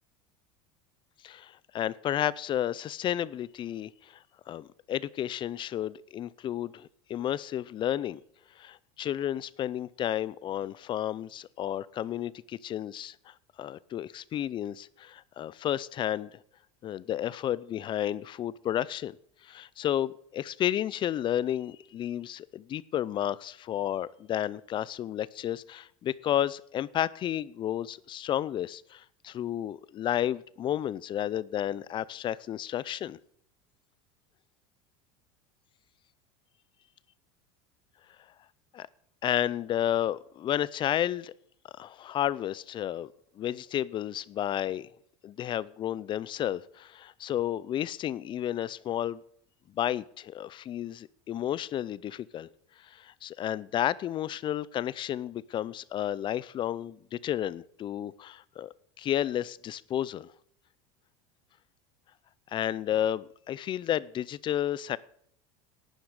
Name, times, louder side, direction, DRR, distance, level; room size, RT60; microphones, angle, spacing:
voice 1, 1.2-4.2 4.5-8.2 8.6-16.4 16.8-19.2 19.4-33.2 38.7-38.9 39.2-41.3 41.8-43.1 43.4-44.9 45.2-49.2 49.7-52.5 52.8-60.3 62.5-65.0, left 11 dB, 30° left, 21 dB, 0.6 m, -32 dB
12.0 x 9.4 x 6.6 m, 0.67 s
supercardioid pair, 140°, 16 cm